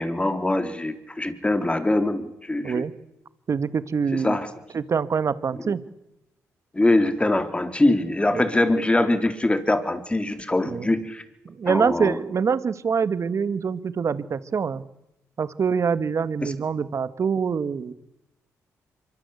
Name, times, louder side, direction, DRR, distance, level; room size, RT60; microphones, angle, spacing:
voice 1, 0.0-2.9 4.1-4.5 6.7-11.2 11.7-12.2 16.4-16.5, left 2 dB, 20° left, 9 dB, 3.6 m, -23 dB
voice 2, 3.5-4.4 4.7-5.8 8.3-8.5 10.7-10.9 11.4-14.8 15.4-17.9, right 6 dB, 50° right, 14 dB, 1.5 m, -25 dB
24.5 x 23.5 x 8.4 m, 0.85 s
supercardioid pair, 65°, 6 cm